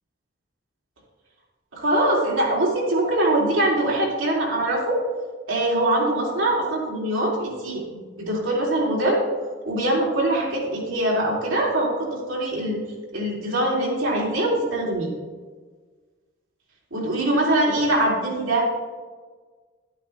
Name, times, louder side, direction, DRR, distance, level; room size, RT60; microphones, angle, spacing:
voice 1, 1.7-5.0 5.5-9.2 9.7-12.8 13.1-15.1 16.9-18.7, right 1 dB, 85° right, -4 dB, 3.1 m, -23 dB
12.0 x 8.6 x 3.3 m, 1.4 s
head